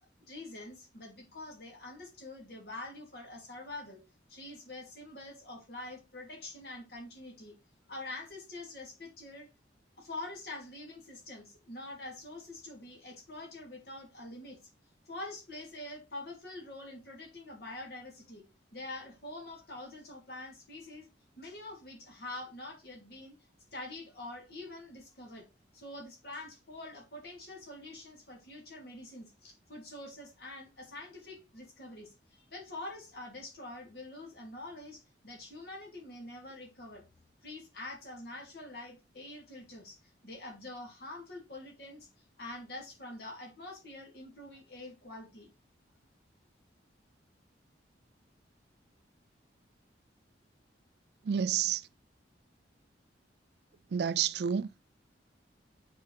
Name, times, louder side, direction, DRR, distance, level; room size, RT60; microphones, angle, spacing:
voice 1, 0.2-4.0 4.3-7.6 7.9-9.5 10.0-14.6 15.1-18.4 18.7-21.1 21.4-23.4 23.7-25.5 25.7-37.0 37.4-40.0 40.2-42.1 42.4-45.5, left 2 dB, 55° left, 2.4 m, -45 dB
voice 2, 51.2-51.9 53.9-54.7, right 8 dB, 60° right, 0.4 m, -29 dB
7.5 x 4.6 x 3.1 m
head